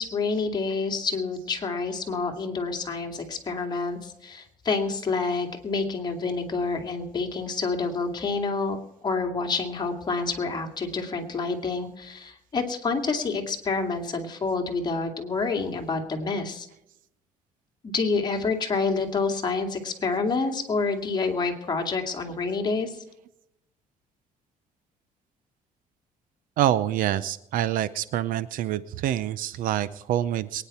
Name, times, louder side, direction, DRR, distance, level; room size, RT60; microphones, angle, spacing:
voice 1, 0.0-8.8 9.0-16.7 17.8-23.0, left 4 dB, 30° left, 4 dB, 2.5 m, -28 dB
voice 2, 26.6-30.6, right 12 dB, 70° right, 16 dB, 0.6 m, -26 dB
22.5 x 10.0 x 4.3 m, 0.83 s
cardioid pair, 135°, 15 cm